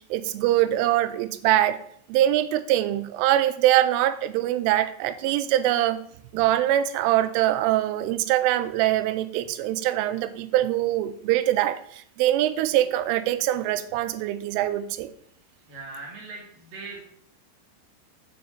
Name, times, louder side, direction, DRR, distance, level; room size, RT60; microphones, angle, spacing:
voice 1, 0.1-1.8 2.1-6.0 6.3-11.8 12.2-15.1, right 13 dB, 85° right, 12 dB, 3.0 m, -23 dB
voice 2, 15.7-17.0, right 3 dB, 65° right, -1 dB, 2.3 m, -40 dB
7.3 x 5.1 x 6.9 m, 0.65 s
omnidirectional pair, 5.8 m